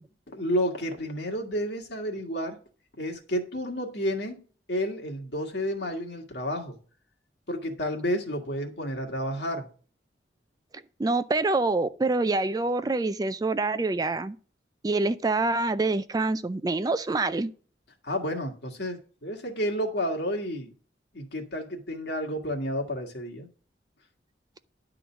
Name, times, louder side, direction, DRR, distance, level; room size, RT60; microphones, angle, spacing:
voice 1, 0.3-2.6 3.0-4.4 4.7-6.8 7.5-9.7 18.0-20.7 21.1-23.5, equal, 70° left, 1.8 m, -31 dB
voice 2, 11.0-14.4 14.8-17.5, right 3 dB, 20° right, 0.3 m, -26 dB
11.0 x 3.9 x 5.8 m
head